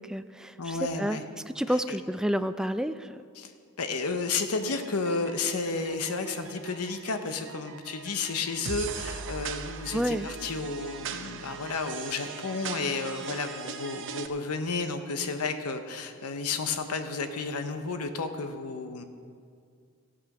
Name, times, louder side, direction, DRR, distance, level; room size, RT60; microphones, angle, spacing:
voice 1, 0.0-3.2 9.9-10.3, equal, 5° right, 11 dB, 0.3 m, -30 dB
voice 2, 0.6-1.2 1.9-2.0 3.4-3.5 3.8-19.0, left 4 dB, 85° left, 7 dB, 0.9 m, -32 dB
sound 1, 4.6-14.3, right 6 dB, 60° right, 0.8 m, -40 dB
14.5 x 8.7 x 6.0 m, 2.2 s
head